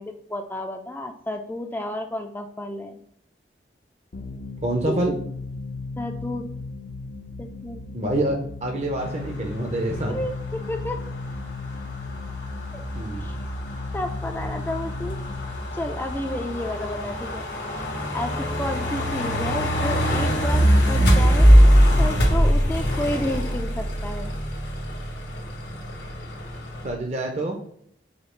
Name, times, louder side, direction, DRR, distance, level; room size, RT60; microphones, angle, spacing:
voice 1, 0.0-3.0 4.9-5.2 6.0-6.5 7.4-7.8 9.9-11.0 12.7-12.8 13.2-13.4 13.9-15.2 15.7-17.5 18.1-21.5 22.0-24.4, left 1 dB, 10° left, 4 dB, 0.3 m, -31 dB
sound 1, 4.1-17.4, left 3 dB, 60° left, 0.6 m, -36 dB
voice 2, 4.6-5.1 7.9-10.2 12.9-13.2 26.8-27.6, right 1 dB, 35° right, 1 dB, 0.6 m, -26 dB
sound 2, 9.0-26.9, equal, 80° left, 1.4 m, -23 dB
5.0 x 2.4 x 4.3 m, 0.68 s
head